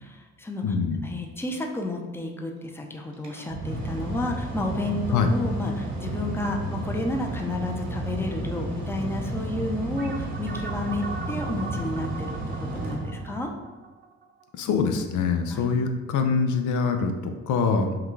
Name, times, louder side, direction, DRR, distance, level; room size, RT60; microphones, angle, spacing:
voice 1, 0.0-0.6 1.0-13.5 15.5-15.7, left 1 dB, 10° left, 2 dB, 0.6 m, -31 dB
voice 2, 0.6-1.2 5.1-5.3 14.5-17.9, left 5 dB, 75° left, 6 dB, 0.6 m, -24 dB
Mechanical fan, 3.1-13.7, right 1 dB, 70° right, 1.2 m, -32 dB
sound 1, 10.0-14.8, right 4 dB, 35° right, 0.6 m, -40 dB
5.7 x 2.3 x 3.2 m, 1.3 s
cardioid pair, 90°, 30 cm